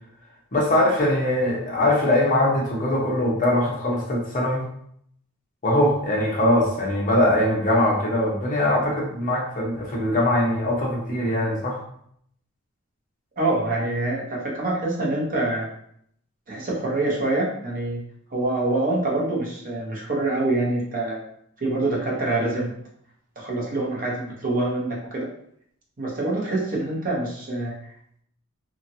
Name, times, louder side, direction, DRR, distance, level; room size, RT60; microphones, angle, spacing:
voice 1, 0.5-4.6 5.6-11.8, left 1 dB, 40° left, -3 dB, 0.8 m, -22 dB
voice 2, 13.4-15.7 16.5-18.0 18.3-21.2 21.6-22.7 23.4-25.3 26.0-27.7, right 2 dB, 40° right, -3 dB, 0.9 m, -25 dB
2.8 x 2.5 x 2.7 m, 0.69 s
head